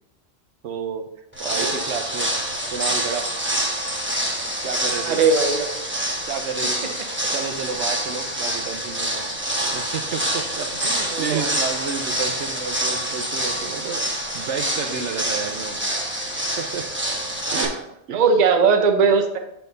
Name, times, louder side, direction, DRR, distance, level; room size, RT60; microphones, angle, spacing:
voice 1, 0.6-1.1 1.4-2.3 2.7-3.3 4.6-5.4 6.3-6.9 7.3-9.3 9.7-15.8 16.6-16.8 17.5-17.8 18.1-18.5, right 6 dB, 75° right, 6 dB, 1.0 m, -31 dB
sound 1, 1.3-17.6, right 1 dB, 10° right, 1.0 m, -26 dB
voice 2, 1.5-1.8 5.0-5.8 11.1-11.5 17.5-17.7 18.1-19.4, right 5 dB, 45° right, 6 dB, 0.7 m, -19 dB
7.6 x 4.5 x 3.9 m, 0.78 s
omnidirectional pair, 1.2 m